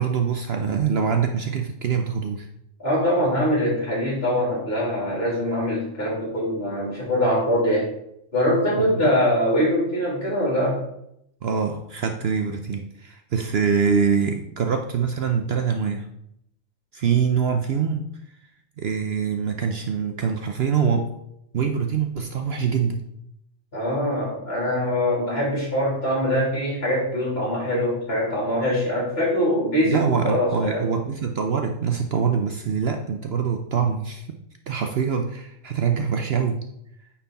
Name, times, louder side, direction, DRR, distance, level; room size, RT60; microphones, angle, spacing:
voice 1, 0.0-2.5 8.8-9.1 11.4-16.1 16.9-18.1 18.8-21.1 21.5-23.0 29.8-34.3 34.7-36.6, right 6 dB, 60° right, 5 dB, 0.8 m, -24 dB
voice 2, 2.8-7.9 8.3-10.8 23.7-30.9, equal, 50° left, -5 dB, 3.7 m, -23 dB
9.1 x 4.4 x 4.1 m, 0.76 s
omnidirectional pair, 1.4 m